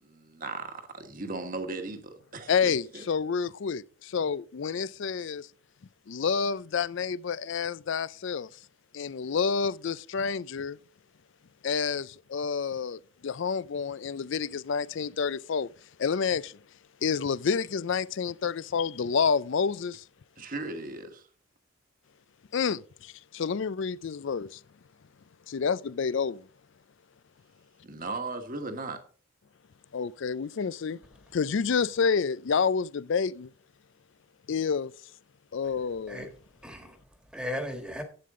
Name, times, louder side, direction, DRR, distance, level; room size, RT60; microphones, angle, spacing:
voice 1, 0.0-3.0 20.4-21.3 27.8-29.0, right 3 dB, 40° right, 1.4 m, -37 dB
voice 2, 2.5-5.5 6.1-8.5 8.9-10.8 11.6-15.7 16.0-16.6 17.0-20.0 22.5-24.6 25.5-26.5 29.9-31.0 31.3-33.5 34.5-34.9 35.5-36.3, left 6 dB, 55° left, 0.4 m, -29 dB
voice 3, 36.6-38.0, left 1 dB, 5° right, 1.5 m, -36 dB
11.0 x 8.6 x 3.7 m
head